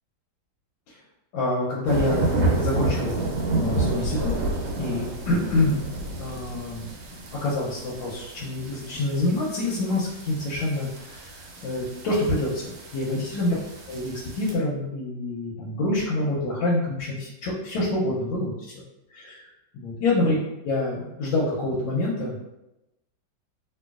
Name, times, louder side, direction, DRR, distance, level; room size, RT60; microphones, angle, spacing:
voice 1, 1.3-2.2 2.6-3.2 3.5-4.3 4.8-5.9 6.2-6.9 7.1-11.3 11.6-13.5 13.9-18.7 19.1-19.4 19.7-20.4 20.6-22.4, left 2 dB, 90° left, -6 dB, 1.4 m, -26 dB
sound 1, 1.9-14.5, right 2 dB, 80° right, 1.3 m, -30 dB
2.9 x 2.8 x 2.3 m, 0.92 s
omnidirectional pair, 2.1 m